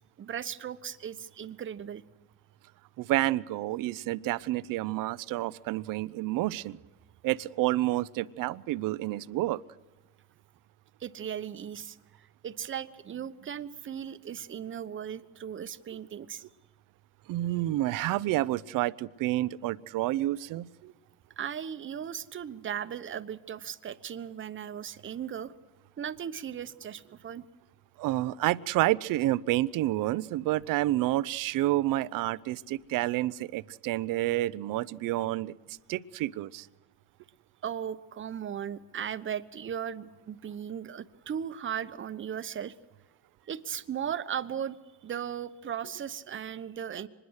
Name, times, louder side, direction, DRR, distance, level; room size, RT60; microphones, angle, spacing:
voice 1, 0.2-2.0 11.0-12.0 12.4-16.4 21.4-25.5 26.0-27.4 37.6-42.7 43.5-44.8 45.0-47.1, right 9 dB, 30° right, 12 dB, 1.0 m, -37 dB
voice 2, 3.0-6.8 7.2-9.6 17.3-20.9 28.0-36.7, right 16 dB, 50° right, 18 dB, 0.7 m, -29 dB
25.0 x 21.0 x 6.5 m, 1.2 s
supercardioid pair, 100°, 42 cm